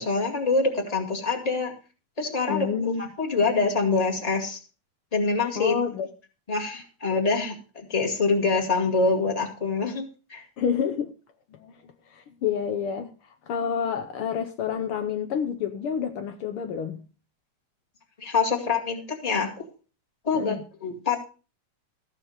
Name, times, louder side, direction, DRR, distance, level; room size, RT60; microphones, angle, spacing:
voice 1, 0.0-1.7 2.2-4.6 5.1-5.7 6.5-10.4 18.2-19.7 20.2-21.2, left 4 dB, 15° left, 1.7 m, -25 dB
voice 2, 2.5-3.0 5.5-6.1 10.6-11.1 11.5-11.8 12.1-13.1 13.5-17.0 20.3-20.6, left 7 dB, 90° left, 1.2 m, -28 dB
14.5 x 5.9 x 6.4 m
omnidirectional pair, 3.6 m